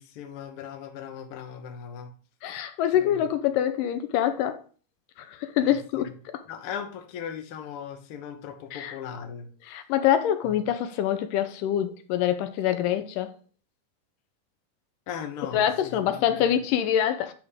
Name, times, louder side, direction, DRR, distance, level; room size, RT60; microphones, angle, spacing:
voice 1, 0.0-2.1 2.9-3.2 5.6-6.1 6.5-9.5 10.4-10.5 15.1-16.4, left 8 dB, 65° left, 1.4 m, -38 dB
voice 2, 2.4-4.6 5.3-6.1 8.7-9.0 9.7-13.3 15.5-17.3, left 10 dB, 90° left, 2.3 m, -25 dB
10.0 x 3.7 x 4.9 m
omnidirectional pair, 3.8 m